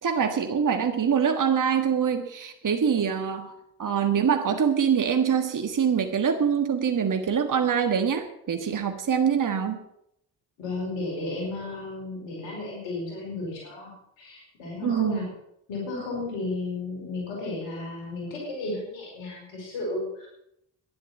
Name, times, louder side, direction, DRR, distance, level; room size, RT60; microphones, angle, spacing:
voice 1, 0.0-3.5 3.8-9.8 14.8-15.2, right 7 dB, 45° right, 7 dB, 1.6 m, -24 dB
voice 2, 10.6-15.2 15.7-20.3, left 2 dB, 85° left, -2 dB, 5.0 m, -33 dB
11.5 x 10.5 x 7.8 m, 0.78 s
hypercardioid pair, 45°, 44 cm